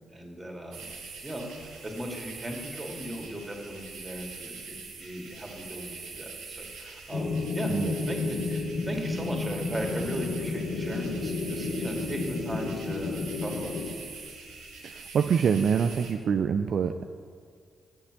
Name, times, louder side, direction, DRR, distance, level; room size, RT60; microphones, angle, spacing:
voice 1, 0.1-0.9 1.2-7.7 8.1-14.2, equal, 20° right, 1 dB, 2.3 m, -38 dB
sound 1, 0.7-16.1, right 4 dB, 80° right, 1.4 m, -44 dB
sound 2, 7.1-14.0, left 3 dB, 65° left, 0.9 m, -31 dB
voice 2, 15.1-17.0, right 7 dB, 60° right, 7 dB, 0.3 m, -25 dB
7.5 x 6.5 x 7.5 m, 2.1 s
hypercardioid pair, 45°, 0 cm